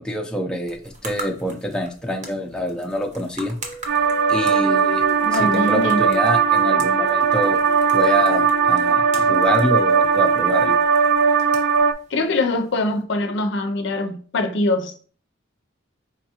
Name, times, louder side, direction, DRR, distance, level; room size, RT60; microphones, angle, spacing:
voice 1, 0.0-3.6 4.3-5.0 5.4-7.6 7.9-10.8, left 1 dB, 5° left, 0.6 m, -26 dB
sound 1, 0.5-13.0, right 2 dB, 40° right, 1.0 m, -42 dB
sound 2, 3.6-11.0, left 2 dB, 30° left, 0.9 m, -39 dB
sound 3, 3.9-11.9, right 6 dB, 65° right, 0.3 m, -18 dB
voice 2, 5.2-6.0 12.1-14.9, left 2 dB, 65° left, 0.5 m, -23 dB
4.8 x 3.5 x 2.8 m
head